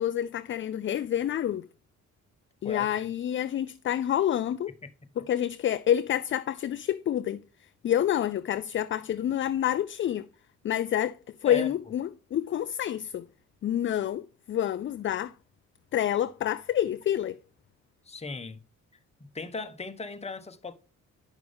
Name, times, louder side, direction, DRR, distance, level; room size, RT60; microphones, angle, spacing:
voice 1, 0.0-1.7 2.6-4.7 5.2-7.4 7.8-10.2 10.6-11.2 11.4-13.2 13.6-15.3 15.9-17.4, left 11 dB, 40° left, 0.4 m, -28 dB
voice 2, 18.1-18.6 19.2-20.7, left 3 dB, 20° left, 1.1 m, -37 dB
9.9 x 6.0 x 3.5 m
cardioid pair, 90°, 30 cm